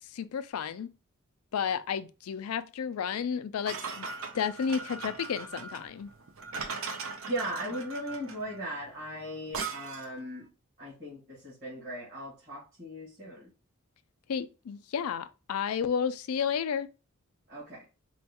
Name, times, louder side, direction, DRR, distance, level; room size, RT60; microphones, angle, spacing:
voice 1, 0.1-0.9 1.5-4.1 4.3-6.1 14.3-16.9, left 7 dB, 80° left, 0.4 m, -32 dB
sound 1, 3.6-10.2, right 4 dB, 65° right, 0.6 m, -39 dB
voice 2, 7.3-10.5 10.8-13.5 17.5-17.8, right 1 dB, 40° right, 1.7 m, -38 dB
4.3 x 2.3 x 2.8 m
head